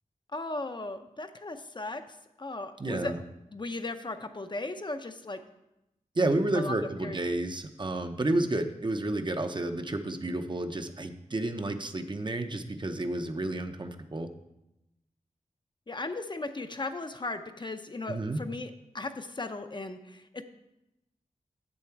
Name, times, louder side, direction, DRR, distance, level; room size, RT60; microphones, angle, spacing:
voice 1, 0.3-2.0 2.4-3.2 3.5-5.4 6.5-6.8 7.0-7.2 15.9-20.4, left 2 dB, 35° left, 8 dB, 0.6 m, -36 dB
voice 2, 2.8-3.2 6.2-14.3 18.1-18.4, right 2 dB, 35° right, 7 dB, 0.7 m, -31 dB
7.5 x 7.2 x 4.5 m, 0.90 s
wide cardioid pair, 70°, 14 cm